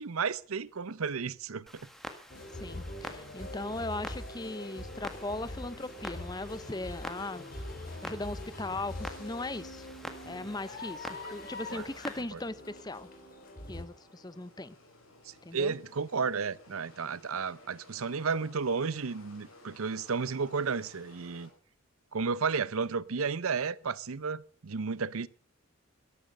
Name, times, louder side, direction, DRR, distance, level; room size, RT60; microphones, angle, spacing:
voice 1, 0.0-1.9 11.2-11.3 11.7-11.9 12.3-12.4 15.3-21.5 22.1-25.3, right 5 dB, 85° right, 0.7 m, -33 dB
Clock, 1.7-12.2, equal, ahead, 1.6 m, -47 dB
sound 1, 2.3-13.9, left 1 dB, 40° left, 2.8 m, -43 dB
voice 2, 2.6-7.4 8.0-9.9 10.3-13.1 13.7-14.8 15.4-15.7, left 2 dB, 20° left, 0.7 m, -38 dB
sound 2, 5.9-21.5, left 1 dB, 80° left, 6.2 m, -57 dB
13.0 x 12.5 x 6.5 m
head